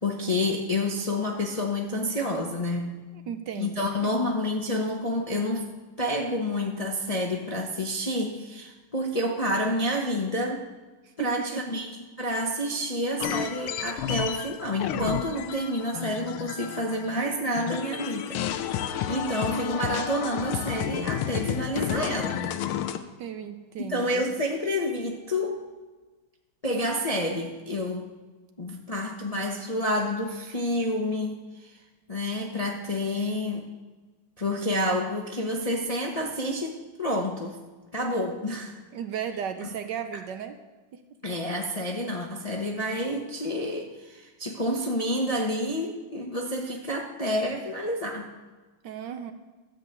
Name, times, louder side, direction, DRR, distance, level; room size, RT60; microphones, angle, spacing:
voice 1, 0.0-3.0 3.6-5.7 6.0-10.7 11.2-11.9 12.2-18.7 19.1-22.5 23.9-25.6 26.6-28.1 28.6-31.3 31.6-31.7 32.1-33.7 34.4-37.6 37.9-38.7 39.6-39.7 41.2-48.3, left 1 dB, 60° left, 0 dB, 0.3 m, -29 dB
voice 2, 3.3-3.9 11.0-11.6 23.2-24.3 38.9-40.6 40.9-41.0 48.8-49.3, right 8 dB, 70° right, 8 dB, 1.1 m, -35 dB
sound 1, 13.2-17.3 17.6-23.0, left 10 dB, 80° left, 1.5 m, -31 dB
13.0 x 5.4 x 8.0 m, 1.3 s
omnidirectional pair, 2.3 m